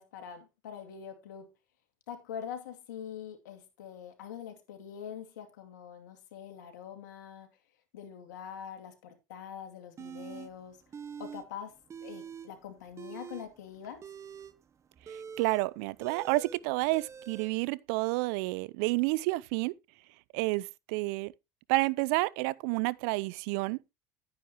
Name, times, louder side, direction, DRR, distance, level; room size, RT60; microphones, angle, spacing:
voice 1, 0.0-1.5 2.1-7.5 7.9-10.8 11.2-11.8 12.0-14.0, left 8 dB, 90° left, 2.5 m, -44 dB
sound 1, 10.0-10.5 10.9-11.4 11.7-12.5 12.9-17.5, right 7 dB, 30° right, 1.0 m, -45 dB
voice 2, 15.1-19.7 20.3-21.3 21.7-24.0, right 22 dB, 70° right, 0.5 m, -30 dB
11.0 x 9.6 x 2.9 m
supercardioid pair, 95°, 9 cm